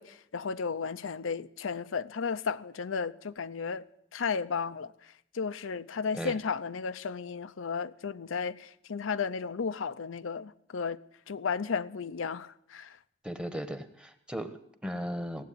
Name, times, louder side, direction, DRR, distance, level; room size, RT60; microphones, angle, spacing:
voice 1, 0.0-3.8 4.1-13.0, left 5 dB, 85° left, 0.6 m, -34 dB
voice 2, 13.2-15.4, equal, 5° right, 1.0 m, -37 dB
17.0 x 8.0 x 9.9 m
head